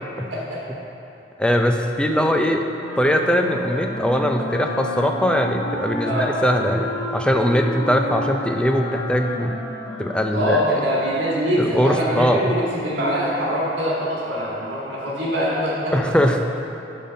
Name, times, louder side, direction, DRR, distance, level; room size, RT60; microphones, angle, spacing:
voice 1, 1.4-2.6 3.0-9.5 10.0-10.8 11.6-12.5 15.9-16.4, equal, 5° left, 4 dB, 0.4 m, -21 dB
Wind instrument woodwind instrument, 2.7-11.4, left 1 dB, 65° left, 1.2 m, -32 dB
voice 2, 10.3-15.9, equal, 70° right, -7 dB, 1.9 m, -23 dB
10.5 x 4.0 x 5.2 m, 3.0 s
head